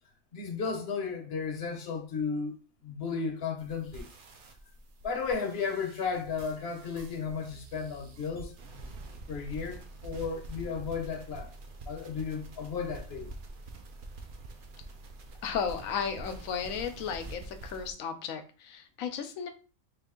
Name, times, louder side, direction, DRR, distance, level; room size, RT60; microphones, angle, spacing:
voice 1, 0.3-4.1 5.0-8.5 9.3-11.5 11.9-13.3, left 5 dB, 55° left, 0.9 m, -34 dB
sound 1, 3.6-17.9, right 2 dB, 50° right, 0.7 m, -46 dB
voice 2, 15.4-19.5, left 7 dB, 85° left, 1.0 m, -34 dB
3.6 x 2.5 x 3.7 m
omnidirectional pair, 1.4 m